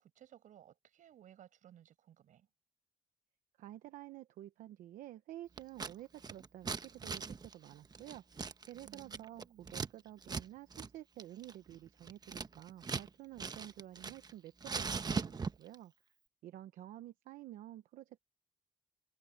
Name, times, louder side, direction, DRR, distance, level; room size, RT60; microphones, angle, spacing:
voice 1, 0.0-2.5 8.8-9.7, right 10 dB, 70° right, 7.1 m, -59 dB
voice 2, 3.6-15.9 16.4-18.2, right 13 dB, 90° right, 0.9 m, -51 dB
Scissors, 5.6-5.9 6.2-9.9 10.2-10.4 10.7-10.9 11.2-13.1 13.4-14.3 14.6-15.7, right 5 dB, 30° right, 1.1 m, -40 dB
cardioid pair, 95°, 13 cm